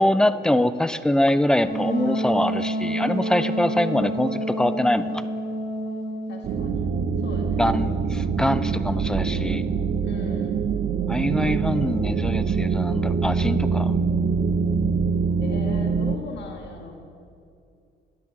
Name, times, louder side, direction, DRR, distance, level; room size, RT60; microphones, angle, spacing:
voice 1, 0.0-5.2 7.6-9.6 11.1-13.9, left 1 dB, 5° left, 12 dB, 0.5 m, -23 dB
Wind instrument woodwind instrument, 1.6-6.5, right 1 dB, 80° left, 2.5 m, -28 dB
voice 2, 3.4-4.0 6.3-6.9 7.2-7.6 10.0-10.6 15.4-16.9, left 4 dB, 60° left, 1 dB, 1.7 m, -38 dB
sound 1, 6.4-16.2, right 5 dB, 60° right, 0.8 m, -24 dB
10.5 x 10.0 x 7.3 m, 2.4 s
cardioid pair, 90°, 20 cm